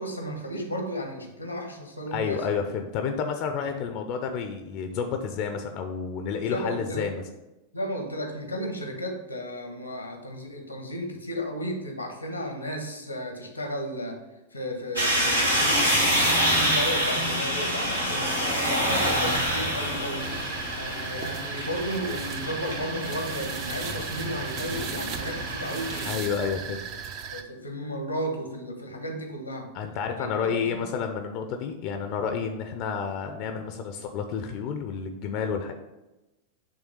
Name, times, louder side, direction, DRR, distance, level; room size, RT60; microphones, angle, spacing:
voice 1, 0.0-2.4 3.6-3.7 6.4-7.0 7.7-14.2 14.5-18.3 18.6-20.3 20.8-26.2 27.3-29.7 30.2-30.7, equal, 85° left, 3 dB, 1.4 m, -34 dB
voice 2, 2.1-7.2 26.1-26.9 29.7-35.7, left 6 dB, 45° left, 5 dB, 0.6 m, -30 dB
sound 1, 15.0-26.1, equal, 90° right, 1.6 m, -27 dB
sound 2, 20.2-27.4, right 7 dB, 40° right, 0.7 m, -36 dB
9.0 x 3.5 x 5.3 m, 1.0 s
figure-of-eight pair, 90°, 0 cm